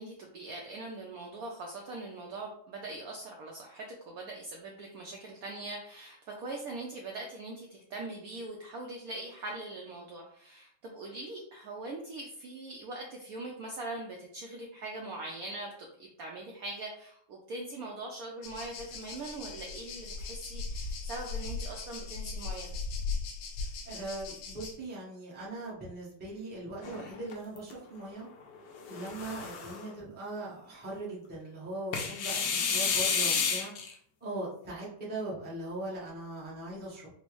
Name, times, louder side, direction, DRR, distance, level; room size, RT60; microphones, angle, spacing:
voice 1, 0.0-22.7, right 2 dB, 85° right, 0 dB, 0.8 m, -42 dB
sound 1, 18.4-24.7, left 4 dB, 85° left, 1.6 m, -38 dB
voice 2, 23.8-28.3 28.9-33.7 34.2-37.1, right 2 dB, 10° right, -7 dB, 0.5 m, -40 dB
sound 2, 26.8-27.7 28.8-29.9 31.9-33.9, left 6 dB, 70° left, 1.1 m, -31 dB
4.3 x 2.0 x 3.0 m, 0.66 s
omnidirectional pair, 2.1 m